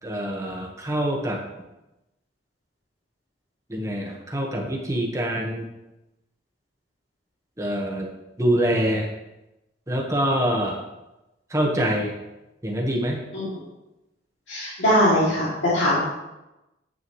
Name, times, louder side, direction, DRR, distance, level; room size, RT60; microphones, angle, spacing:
voice 1, 0.0-1.4 3.7-5.6 7.6-8.1 8.4-9.1 9.9-10.8 11.5-12.1 12.6-13.2, right 1 dB, 15° right, 0 dB, 1.3 m, -25 dB
voice 2, 14.5-16.0, equal, 90° left, -8 dB, 2.5 m, -21 dB
9.9 x 7.9 x 3.1 m, 0.96 s
head